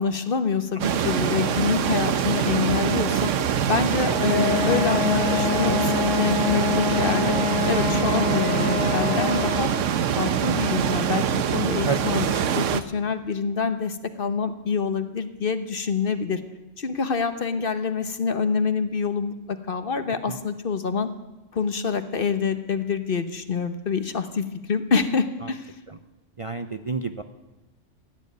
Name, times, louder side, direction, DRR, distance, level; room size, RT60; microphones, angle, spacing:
voice 1, 0.0-3.3 3.7-7.4 7.7-9.7 10.2-16.4 16.8-21.1 21.5-25.7, left 5 dB, 50° left, 10 dB, 1.1 m, -26 dB
sound 1, 0.8-12.8, right 8 dB, 90° right, 1.1 m, -24 dB
Wind instrument woodwind instrument, 4.1-9.8, left 8 dB, 75° left, 1.4 m, -26 dB
voice 2, 26.4-27.2, right 4 dB, 35° right, 7 dB, 0.6 m, -30 dB
15.5 x 9.7 x 9.4 m, 1.0 s
omnidirectional pair, 1.2 m